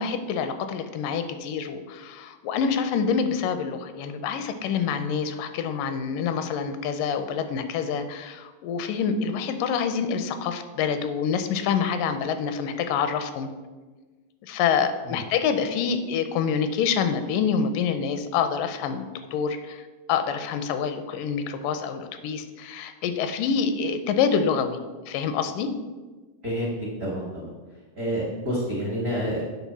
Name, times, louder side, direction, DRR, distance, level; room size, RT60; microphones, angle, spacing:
voice 1, 0.0-13.5 14.4-24.8 25.1-25.7, left 6 dB, 85° left, 9 dB, 2.2 m, -26 dB
voice 2, 26.4-26.7 27.0-27.5 27.9-29.4, equal, 65° right, -5 dB, 0.9 m, -28 dB
8.4 x 3.5 x 6.1 m, 1.3 s
omnidirectional pair, 3.8 m